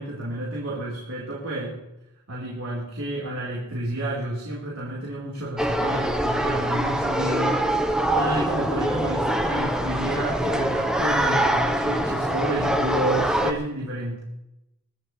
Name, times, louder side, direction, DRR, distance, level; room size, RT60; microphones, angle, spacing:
voice 1, 0.0-1.8 2.3-7.6 8.1-14.2, right 1 dB, 70° right, -5 dB, 4.6 m, -30 dB
sound 1, 5.6-13.5, right 1 dB, 5° right, 1.1 m, -24 dB
24.0 x 12.5 x 3.4 m, 0.89 s
head